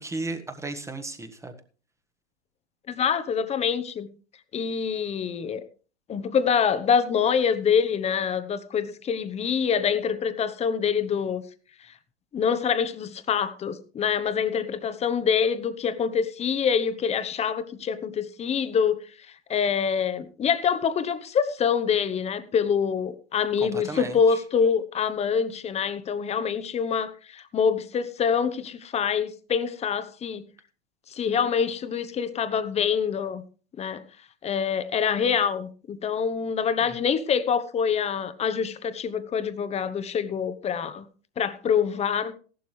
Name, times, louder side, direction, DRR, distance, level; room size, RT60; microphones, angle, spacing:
voice 1, 0.0-1.5 23.6-24.4 36.8-37.0, right 2 dB, 10° right, 7 dB, 1.3 m, -35 dB
voice 2, 2.9-4.1 4.5-5.6 6.1-11.4 11.9-12.0 12.3-19.0 19.5-30.4 31.1-33.4 33.8-34.0 34.4-41.1 41.4-42.3, left 7 dB, 20° left, 13 dB, 1.0 m, -25 dB
15.0 x 11.5 x 3.3 m, 0.39 s
hypercardioid pair, 110°, 34 cm